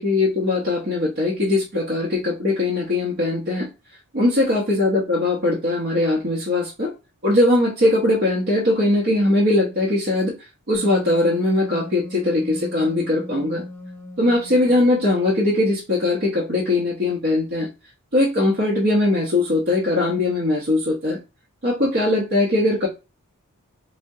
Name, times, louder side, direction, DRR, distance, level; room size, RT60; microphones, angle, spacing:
voice 1, 0.0-3.7 4.1-6.9 7.2-10.3 10.7-13.6 14.2-17.7 18.1-21.2 21.6-22.9, left 2 dB, 50° right, -4 dB, 0.8 m, -20 dB
Wind instrument woodwind instrument, 10.7-15.2, left 1 dB, 5° left, 0.5 m, -37 dB
3.4 x 2.1 x 2.6 m, 0.27 s
head